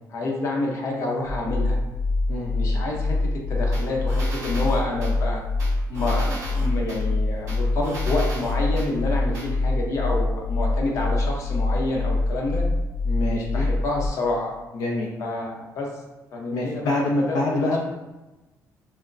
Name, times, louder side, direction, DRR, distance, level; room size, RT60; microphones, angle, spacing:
voice 1, 0.1-1.8 2.5-3.2 3.5-5.4 5.9-12.6 13.2-14.5 15.2-15.9 16.3-17.8, left 2 dB, 50° left, -1 dB, 0.8 m, -28 dB
sound 1, 1.2-14.1, left 2 dB, 70° right, 0.6 m, -25 dB
voice 2, 2.3-2.8 13.1-13.7 14.7-15.1 16.5-17.8, left 2 dB, 80° left, -2 dB, 0.5 m, -26 dB
sound 2, 3.7-5.1 5.6-7.0 7.5-8.9 9.3-9.5, right 1 dB, 50° right, 1.5 m, -37 dB
5.9 x 2.1 x 2.6 m, 1.1 s
cardioid pair, 155°, 7 cm